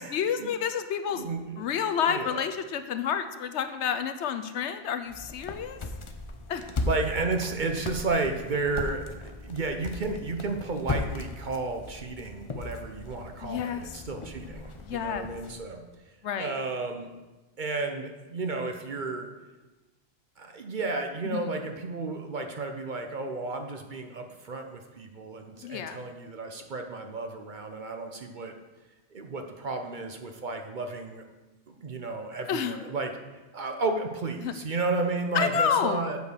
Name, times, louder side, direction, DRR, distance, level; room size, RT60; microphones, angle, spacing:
voice 1, 0.1-1.3 1.6-5.8 6.5-6.6 13.4-13.8 14.8-15.3 16.2-16.5 21.3-21.5 25.6-26.0 32.5-32.8 34.4-34.5 35.3-36.0, left 8 dB, 75° left, 9 dB, 0.9 m, -29 dB
voice 2, 1.1-1.6 2.0-2.4 6.6-9.1 9.4-15.8 16.4-17.1 17.6-19.3 20.4-28.6 29.1-31.2 31.7-33.1 33.5-36.2, right 3 dB, 45° right, 5 dB, 0.8 m, -32 dB
sound 1, 5.1-15.6, left 3 dB, 35° left, 0.5 m, -37 dB
8.0 x 5.1 x 6.3 m, 1.1 s
omnidirectional pair, 1.2 m